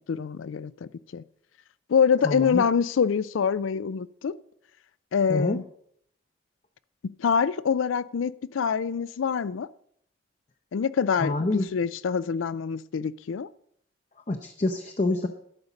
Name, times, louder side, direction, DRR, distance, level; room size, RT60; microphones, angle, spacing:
voice 1, 0.1-1.2 1.9-4.3 5.1-5.6 7.2-9.7 10.7-11.3 11.7-13.5, left 6 dB, 90° left, 0.4 m, -25 dB
voice 2, 2.2-2.6 5.3-5.6 11.2-11.6 14.3-15.3, left 2 dB, 40° left, 0.6 m, -26 dB
12.0 x 5.2 x 7.0 m
head